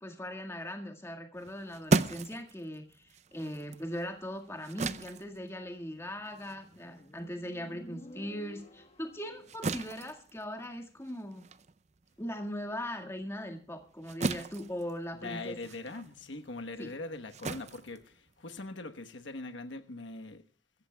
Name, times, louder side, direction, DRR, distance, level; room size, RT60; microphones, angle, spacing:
voice 1, 0.0-11.5 12.2-15.6 16.8-16.9, equal, 15° left, 1.8 m, -40 dB
sound 1, 1.4-8.2 8.5-18.7, right 3 dB, 40° right, 0.5 m, -37 dB
Motorcycle, 6.1-9.6, left 1 dB, 35° left, 1.4 m, -52 dB
voice 2, 15.2-20.4, left 2 dB, 90° left, 1.2 m, -42 dB
24.0 x 14.0 x 2.3 m
head